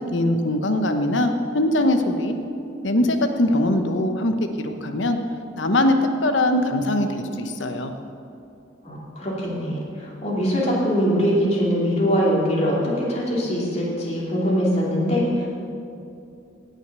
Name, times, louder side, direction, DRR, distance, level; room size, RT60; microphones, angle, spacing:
voice 1, 0.0-2.4 2.8-5.2 5.6-7.9, left 1 dB, 85° left, 6 dB, 1.0 m, -22 dB
voice 2, 8.8-15.5, equal, 35° left, -5 dB, 2.9 m, -22 dB
17.5 x 6.5 x 6.8 m, 2.7 s
head